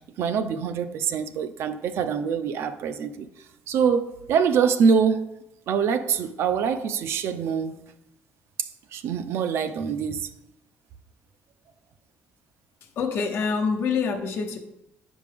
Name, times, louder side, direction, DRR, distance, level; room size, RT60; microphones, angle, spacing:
voice 1, 0.0-3.3 3.7-5.2 5.7-7.8 8.6-10.3, right 6 dB, 65° right, 10 dB, 0.5 m, -24 dB
voice 2, 12.8-14.6, left 5 dB, 65° left, 3 dB, 0.9 m, -26 dB
7.5 x 5.2 x 3.5 m, 0.90 s
cardioid pair, 120°, 5 cm